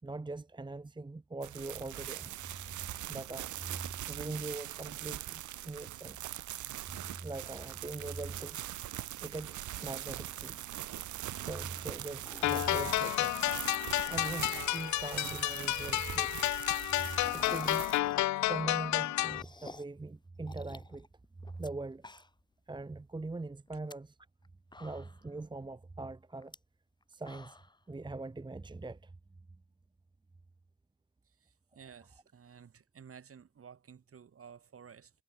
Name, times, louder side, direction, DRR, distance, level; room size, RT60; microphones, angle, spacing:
voice 1, 0.0-2.3 3.1-6.3 6.9-8.6 9.2-10.6 11.1-13.3 14.1-16.4 17.0-17.9 18.5-21.1 21.4-22.0 22.7-24.1 24.8-26.5 27.1-27.6 27.9-29.1, right 3 dB, 15° right, 1.2 m, -42 dB
sound 1, 1.4-18.0, right 13 dB, 75° right, 1.9 m, -42 dB
sound 2, 12.1-12.9 13.9-15.0 15.3-15.4 15.7-15.8 16.0-16.1 16.3-18.5 18.9-20.0 20.5-21.7 22.0-22.5 22.9-23.0 23.7-23.9 24.4-24.5 24.7-25.3 26.4-26.6 27.0-27.8, left 2 dB, 15° left, 1.6 m, -51 dB
sound 3, 12.4-19.4, left 16 dB, 70° left, 0.6 m, -31 dB
voice 2, 31.3-35.1, right 7 dB, 50° right, 7.6 m, -54 dB
cardioid pair, 90°, 30 cm